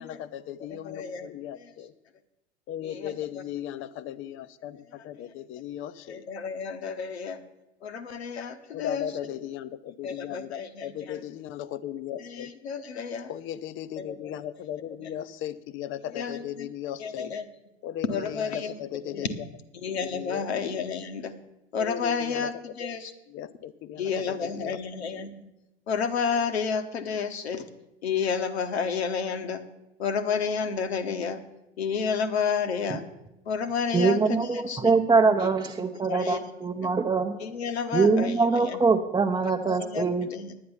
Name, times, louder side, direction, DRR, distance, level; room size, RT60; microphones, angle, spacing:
voice 1, 0.0-1.9 2.7-6.2 8.7-12.5 13.3-17.3 17.8-19.3 20.0-20.7 21.8-22.5 23.3-24.8, left 11 dB, 40° left, 14 dB, 0.7 m, -37 dB
voice 2, 0.7-1.7 2.8-3.4 4.9-5.3 6.1-7.4 7.8-9.1 10.0-11.2 12.2-13.3 14.0-14.4 15.0-15.1 16.1-16.7 17.0-17.5 18.0-18.8 19.1-19.3 19.7-21.3 21.7-23.1 24.0-25.3 25.9-27.7 28.0-29.6 30.0-31.4 31.8-33.0 33.4-34.9 35.4-35.5 35.9-36.5 36.8-36.9 37.4-38.8 39.4-40.5, left 6 dB, 75° left, 7 dB, 1.2 m, -31 dB
voice 3, 33.9-37.4 37.9-40.3, right 4 dB, 15° right, 1 dB, 0.8 m, -23 dB
10.0 x 9.5 x 7.0 m, 0.92 s
figure-of-eight pair, 80°, 32 cm